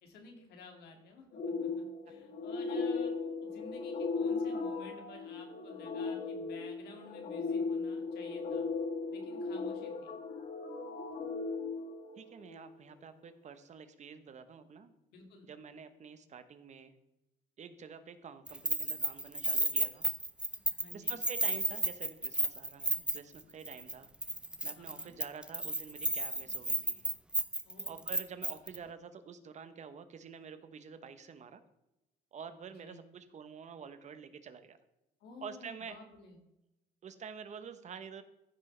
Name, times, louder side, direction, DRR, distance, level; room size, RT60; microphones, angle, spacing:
voice 1, 0.0-3.1 3.4-8.7 9.1-10.1 15.1-15.5 20.7-21.2 24.7-25.1 27.7-28.0 32.8-33.0 35.2-36.4, left 3 dB, 75° left, 3 dB, 2.5 m, -53 dB
sound 1, 1.3-12.7, left 4 dB, 50° left, 1.5 m, -37 dB
voice 2, 12.2-14.9 15.4-16.9 17.6-20.0 20.9-24.1 24.6-27.0 27.9-31.6 32.3-34.8 35.4-36.0 37.0-38.2, right 6 dB, 45° right, 10 dB, 1.0 m, -48 dB
Keys jangling, 18.5-23.4 23.7-23.9 24.2-28.8, right 1 dB, 5° right, 0.6 m, -32 dB
15.0 x 6.1 x 3.4 m, 0.91 s
cardioid pair, 110°, 17 cm